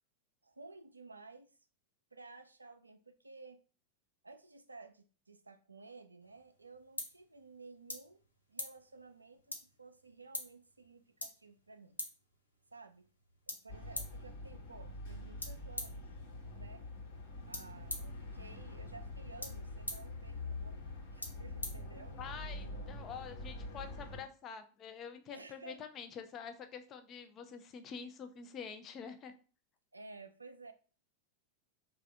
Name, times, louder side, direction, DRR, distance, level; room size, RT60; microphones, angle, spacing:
voice 1, 0.4-1.6 2.1-3.6 4.2-8.2 8.5-12.0 12.7-13.1 13.5-16.1 16.5-16.9 17.5-22.2 22.6-22.8 25.3-25.8 29.9-30.7, right 3 dB, 80° right, 9 dB, 0.3 m, -54 dB
sound 1, 6.2-22.5, left 1 dB, 85° left, 0.6 m, -48 dB
sound 2, 13.7-24.2, left 2 dB, 55° left, 1.1 m, -45 dB
voice 2, 22.2-29.3, left 6 dB, 30° left, 7 dB, 0.5 m, -47 dB
3.3 x 2.3 x 3.7 m, 0.37 s
figure-of-eight pair, 90°, 0 cm